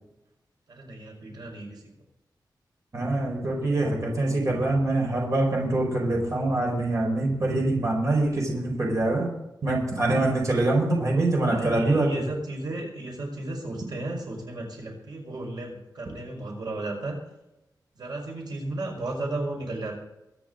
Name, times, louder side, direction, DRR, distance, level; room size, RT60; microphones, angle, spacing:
voice 1, 0.7-1.8 11.5-17.2 18.0-20.0, right 2 dB, 65° right, 0 dB, 4.9 m, -34 dB
voice 2, 2.9-9.3 9.6-12.2, right 2 dB, 45° right, -1 dB, 4.9 m, -24 dB
24.0 x 10.0 x 3.9 m, 0.91 s
wide cardioid pair, 150°, 8 cm